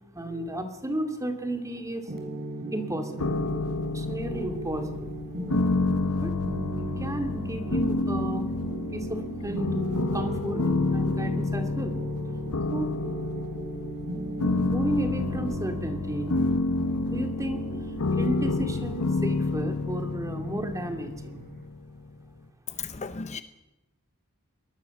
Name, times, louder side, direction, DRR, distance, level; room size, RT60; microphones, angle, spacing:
voice 1, 0.1-2.1 2.7-3.4 3.9-5.1 6.2-6.4 7.0-8.6 8.9-9.8 10.1-10.6 10.9-12.0 12.7-12.9 14.7-16.3 17.1-17.7 18.1-21.4, right 1 dB, 15° right, 2.4 m, -33 dB
sound 1, 2.1-21.6, right 2 dB, 45° right, 5.0 m, -38 dB
sound 2, 3.2-22.2, left 3 dB, 90° left, 1.3 m, -29 dB
voice 2, 22.8-23.4, left 5 dB, 30° left, 0.8 m, -35 dB
23.5 x 19.5 x 7.1 m
head